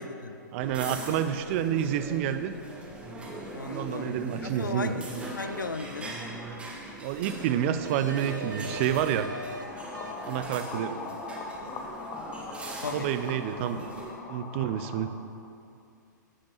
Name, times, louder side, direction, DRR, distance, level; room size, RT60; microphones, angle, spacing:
voice 1, 0.0-0.4 3.5-6.2 12.8-13.1, left 4 dB, 85° left, 10 dB, 0.4 m, -37 dB
voice 2, 0.5-2.5 3.6-5.0 7.0-9.3 10.2-11.0 12.9-13.9 14.3-15.1, right 10 dB, 40° right, 11 dB, 0.5 m, -29 dB
sound 1, 0.6-14.1, right 1 dB, 10° right, 1.2 m, -41 dB
sound 2, 5.4-5.7 7.8-9.6 9.9-10.3, right 1 dB, 80° right, 0.7 m, -40 dB
sound 3, 9.0-15.1, left 4 dB, 30° left, 0.8 m, -41 dB
14.5 x 5.2 x 3.0 m, 2.5 s
figure-of-eight pair, 115°, 10 cm